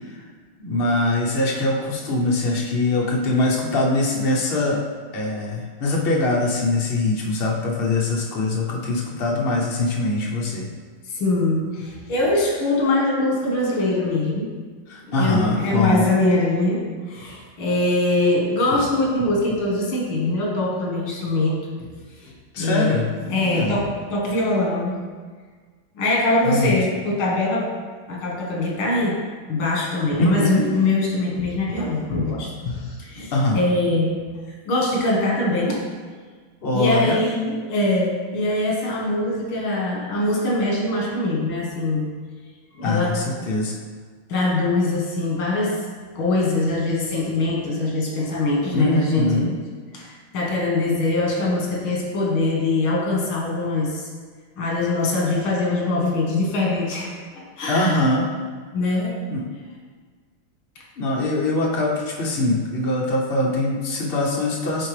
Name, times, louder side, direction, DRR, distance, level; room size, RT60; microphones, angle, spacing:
voice 1, 0.6-4.8 5.1-10.7 14.9-16.1 22.5-23.7 26.4-26.7 30.2-30.6 33.3-33.6 36.6-37.2 42.8-43.7 48.6-49.5 57.7-58.3 59.3-59.5 61.0-64.9, left 2 dB, 60° left, -3 dB, 0.6 m, -22 dB
voice 2, 11.1-14.5 15.0-16.8 17.1-21.6 22.2-23.0 23.3-25.0 26.0-27.7 28.1-29.2 29.5-34.2 34.7-35.8 36.7-42.1 42.8-43.2 44.3-45.8 46.2-49.5 49.9-54.0 54.6-57.1 57.6-57.9 58.7-59.2, left 2 dB, 85° left, -3 dB, 2.1 m, -22 dB
9.0 x 3.5 x 3.2 m, 1.5 s
omnidirectional pair, 2.2 m